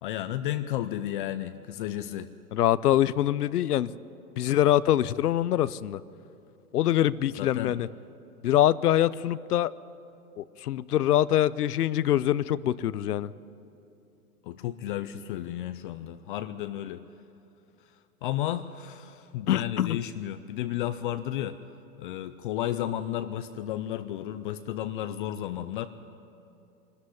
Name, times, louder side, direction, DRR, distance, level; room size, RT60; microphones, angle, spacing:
voice 1, 0.0-2.3 7.4-7.8 14.4-17.0 17.9-21.6 22.0-25.9, left 12 dB, 35° left, 11 dB, 0.5 m, -33 dB
voice 2, 2.5-3.9 4.4-6.0 6.7-7.9 8.4-9.7 10.4-13.3 19.5-20.0, left 12 dB, 85° left, 18 dB, 0.7 m, -24 dB
22.0 x 13.5 x 9.7 m, 2.8 s
hypercardioid pair, 135°, 45 cm